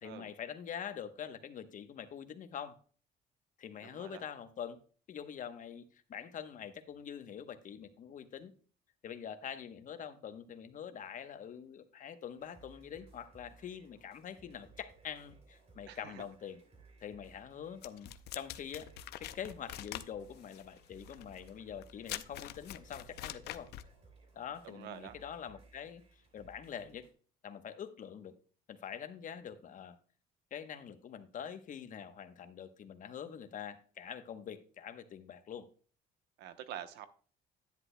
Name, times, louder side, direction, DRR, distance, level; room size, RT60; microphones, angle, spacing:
voice 1, 0.0-2.8 3.6-4.8 5.1-8.5 9.0-16.6 17.0-23.7 24.3-27.1 27.4-28.4 28.7-30.0 30.5-35.7, left 8 dB, 50° left, 1.0 m, -45 dB
voice 2, 3.8-4.3 15.9-16.2 24.6-25.2 36.4-37.1, right 11 dB, 85° right, 0.9 m, -47 dB
sound 1, 12.4-27.1, right 4 dB, 40° right, 3.0 m, -61 dB
sound 2, 17.8-23.9, left 14 dB, 75° left, 0.6 m, -45 dB
10.5 x 9.9 x 2.2 m
cardioid pair, 110°, 17 cm